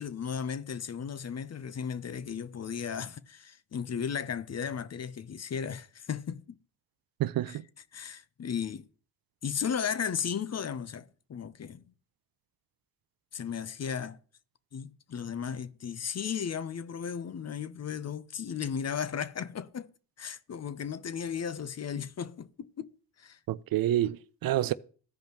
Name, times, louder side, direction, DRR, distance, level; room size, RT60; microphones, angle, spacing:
voice 1, 0.0-6.4 7.5-7.6 7.9-8.9 9.4-11.9 13.3-14.2 14.7-19.9 20.2-22.9 23.2-23.4, left 7 dB, 40° left, 0.7 m, -35 dB
voice 2, 7.2-7.6 23.5-24.7, right 13 dB, 65° right, 0.5 m, -28 dB
15.0 x 5.2 x 3.0 m
supercardioid pair, 45°, 39 cm